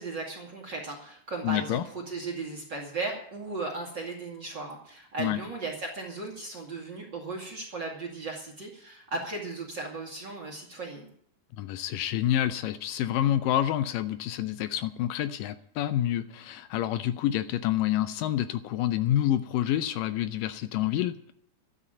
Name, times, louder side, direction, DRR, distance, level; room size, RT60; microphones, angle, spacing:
voice 1, 0.0-11.1, right 3 dB, 35° right, 1 dB, 2.2 m, -36 dB
voice 2, 1.4-1.8 5.2-5.4 11.6-21.2, left 12 dB, 85° left, 11 dB, 1.9 m, -28 dB
12.5 x 8.9 x 8.9 m, 0.65 s
omnidirectional pair, 4.7 m